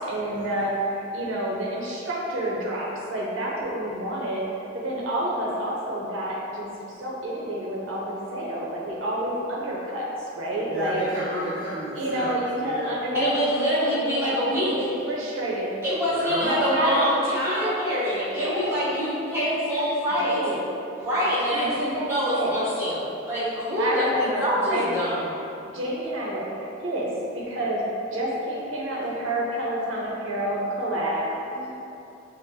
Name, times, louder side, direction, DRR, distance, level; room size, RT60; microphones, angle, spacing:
voice 1, 0.1-4.4 4.7-6.7 7.0-10.1 10.3-11.0 11.9-15.7 16.4-18.0 18.4-19.8 20.2-20.6 21.5-22.6 23.8-24.9 25.7-26.4 26.8-27.1 27.3-27.8 28.1-31.3, right 1 dB, 90° right, -4 dB, 0.6 m, -29 dB
voice 2, 10.7-12.9 16.1-16.5 23.8-24.2 31.5-31.7, equal, 45° right, -10 dB, 0.5 m, -33 dB
voice 3, 13.1-14.7 15.8-20.4 21.0-25.3, equal, 15° right, -11 dB, 0.8 m, -25 dB
5.3 x 2.0 x 2.7 m, 2.8 s
head